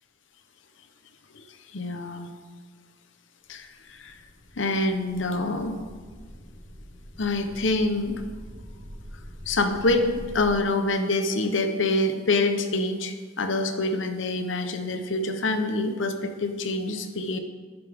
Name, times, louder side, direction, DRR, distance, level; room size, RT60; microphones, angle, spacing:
voice 1, 1.7-2.3 3.5-4.1 4.6-5.8 7.2-8.2 9.5-17.4, left 2 dB, 85° left, 7 dB, 0.9 m, -26 dB
sound 1, 3.5-3.6 3.9-10.5, equal, 30° left, 2.4 m, -44 dB
11.0 x 9.5 x 3.6 m, 1.5 s
head